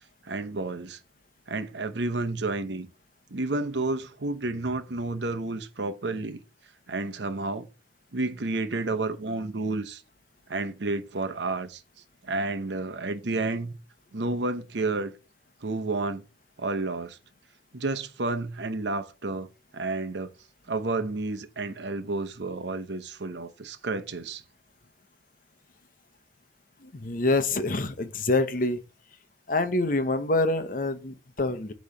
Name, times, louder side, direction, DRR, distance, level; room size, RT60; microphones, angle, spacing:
voice 1, 0.2-1.0 1.5-2.9 3.3-6.4 6.9-7.7 8.1-10.0 10.5-11.8 12.2-13.7 14.1-15.1 15.6-16.2 16.6-17.2 17.7-19.5 19.7-20.3 20.7-24.4, right 2 dB, 75° right, 0.8 m, -30 dB
voice 2, 26.8-28.8 29.5-31.7, left 2 dB, 50° left, 0.8 m, -26 dB
8.6 x 3.2 x 5.3 m
head